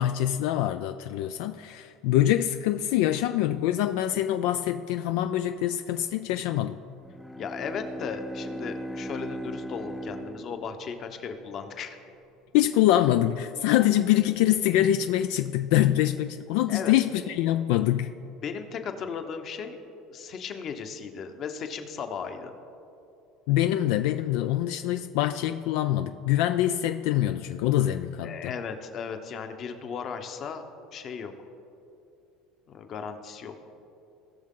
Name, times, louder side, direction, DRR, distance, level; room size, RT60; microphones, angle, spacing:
voice 1, 0.0-6.8 12.5-18.1 23.5-28.5, left 13 dB, 75° left, 9 dB, 0.3 m, -24 dB
Bowed string instrument, 7.0-11.3, equal, 5° left, 0.5 m, -38 dB
voice 2, 7.4-12.0 16.7-16.9 18.4-19.8 20.1-22.6 28.2-30.6 30.9-31.3 32.7-33.6, left 6 dB, 40° left, 7 dB, 0.9 m, -36 dB
19.0 x 6.5 x 3.7 m, 2.7 s
cardioid pair, 135°, 0 cm